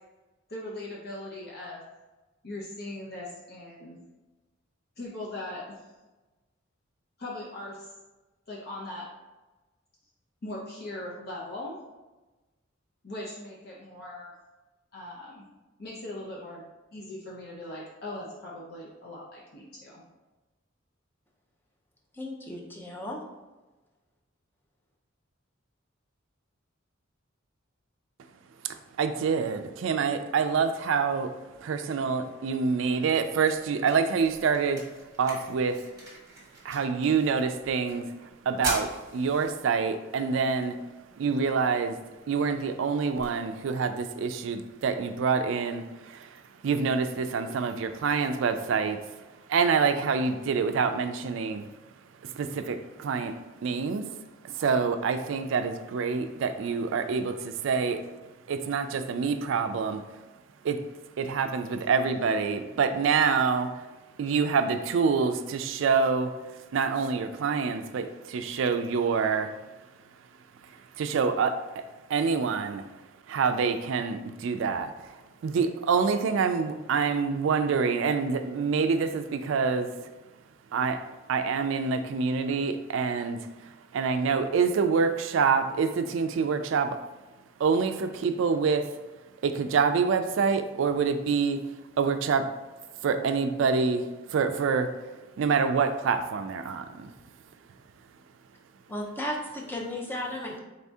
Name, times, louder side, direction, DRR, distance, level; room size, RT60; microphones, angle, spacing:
voice 1, 0.5-1.8 2.4-4.0 5.0-5.9 7.2-7.9 8.5-9.1 10.4-11.8 13.0-14.3 14.9-15.5 15.8-16.6 16.9-20.0, left 1 dB, 50° left, -4 dB, 0.6 m, -39 dB
voice 2, 22.1-23.2 98.9-100.6, left 1 dB, 10° left, -2 dB, 0.6 m, -35 dB
voice 3, 28.6-31.3 31.6-34.8 35.2-35.8 36.6-38.1 38.5-40.8 41.2-42.0 42.3-49.0 49.5-51.7 52.2-58.0 58.5-60.0 60.6-60.8 61.2-63.7 64.2-66.4 66.7-69.5 71.0-72.9 73.3-75.1 75.4-79.9 80.7-81.0 81.3-83.5 83.9-87.0 87.6-88.9 89.4-91.6 92.0-92.5 93.0-94.9 95.4-97.1, right 5 dB, 65° right, 9 dB, 0.3 m, -26 dB
sound 1, 32.8-44.8, right 2 dB, 20° right, 1.3 m, -43 dB
4.1 x 2.7 x 3.4 m, 1.1 s
head